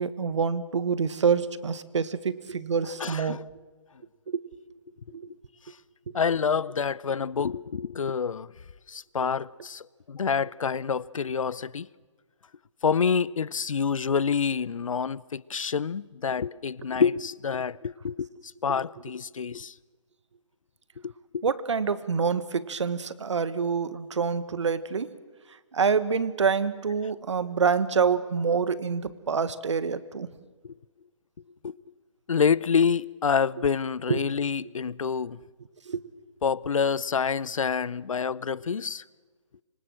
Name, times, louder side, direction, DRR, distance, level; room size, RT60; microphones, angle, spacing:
voice 1, 0.0-3.4 4.3-4.4 5.1-5.3 21.4-25.1 25.7-30.3 34.1-34.2 35.9-36.0, right 6 dB, 65° right, 1.4 m, -26 dB
voice 2, 3.0-3.4 6.1-8.5 8.9-11.9 12.8-18.3 18.6-19.7 21.0-21.4 30.6-30.7 31.6-31.8 32.3-35.4 36.4-39.0, left 6 dB, 80° left, 0.7 m, -27 dB
26.0 x 23.0 x 7.6 m
hypercardioid pair, 170°, 17 cm